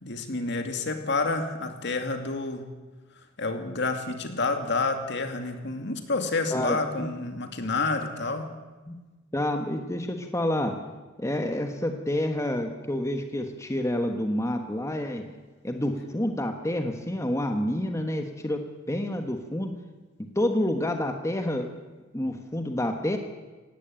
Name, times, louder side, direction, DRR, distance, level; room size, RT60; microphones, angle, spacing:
voice 1, 0.0-2.6 3.4-8.5, left 3 dB, 60° left, 6 dB, 2.4 m, -29 dB
voice 2, 6.5-7.1 8.9-9.0 9.3-10.7 11.2-15.2 15.6-18.6 18.9-19.7 20.3-21.7 22.1-23.2, left 1 dB, 15° left, 5 dB, 1.3 m, -28 dB
18.5 x 16.0 x 8.9 m, 1.3 s
head